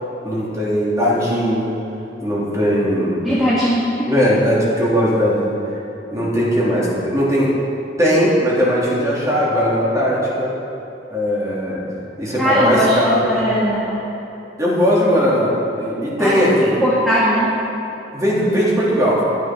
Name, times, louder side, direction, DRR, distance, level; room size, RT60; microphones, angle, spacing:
voice 1, 0.2-1.7 2.2-3.2 4.0-5.8 6.1-7.5 8.0-10.5 11.1-11.8 12.2-13.3 14.6-16.8 18.1-19.2, equal, 20° right, -6 dB, 3.2 m, -18 dB
voice 2, 3.2-4.1 12.4-14.0 16.2-16.3 16.8-17.5, equal, ahead, -10 dB, 2.0 m, -18 dB
13.0 x 10.0 x 6.2 m, 3.0 s
head